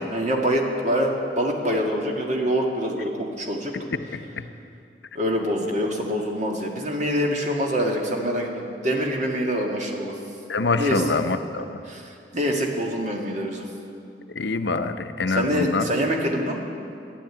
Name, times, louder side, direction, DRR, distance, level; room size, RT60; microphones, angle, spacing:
voice 1, 0.1-3.7 5.1-10.2 10.8-11.0 11.9-13.7 15.3-16.6, equal, 45° right, 1 dB, 2.0 m, -25 dB
voice 2, 3.9-4.5 10.5-11.8 14.3-15.9, left 3 dB, 80° left, 9 dB, 0.7 m, -25 dB
13.5 x 10.5 x 8.7 m, 2.5 s
head